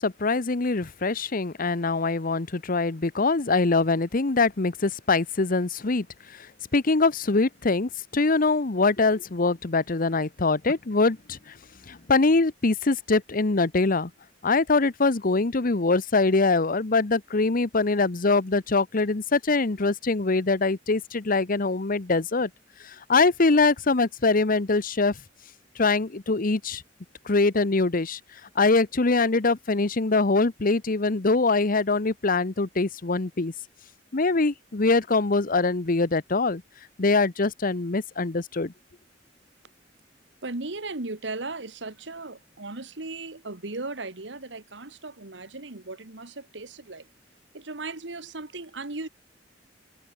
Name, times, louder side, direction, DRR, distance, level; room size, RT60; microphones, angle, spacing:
voice 1, 0.0-6.5 6.7-11.5 11.9-14.1 14.4-22.5 22.8-25.2 25.8-26.8 27.2-28.2 28.6-33.5 34.1-36.6 37.0-38.7, left 3 dB, 50° left, 0.9 m, -23 dB
voice 2, 40.4-47.1 47.5-49.1, right 3 dB, 70° right, 1.9 m, -37 dB
head